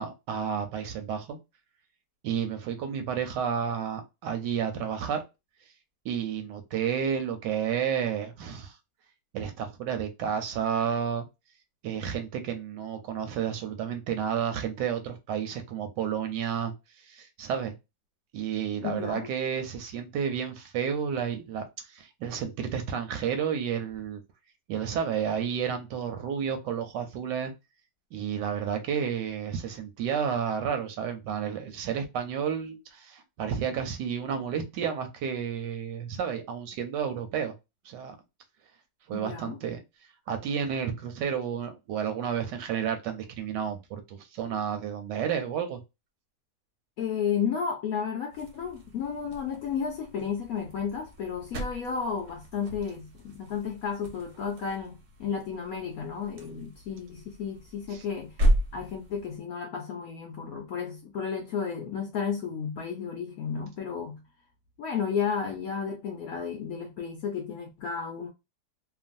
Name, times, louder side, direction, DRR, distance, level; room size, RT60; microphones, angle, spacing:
voice 1, 0.0-1.4 2.2-5.2 6.0-8.8 9.3-11.3 11.8-17.7 18.3-24.2 24.7-27.5 28.1-37.5 37.8-38.2 39.1-39.8 40.3-45.8 57.9-58.0, right 8 dB, 75° right, 1.2 m, -31 dB
voice 2, 18.8-19.3 39.1-39.6 47.0-58.4 58.7-64.2 64.8-68.3, left 6 dB, 70° left, 0.8 m, -33 dB
sound 1, 48.3-59.4, equal, 60° right, 0.8 m, -34 dB
3.0 x 2.2 x 2.5 m
omnidirectional pair, 2.1 m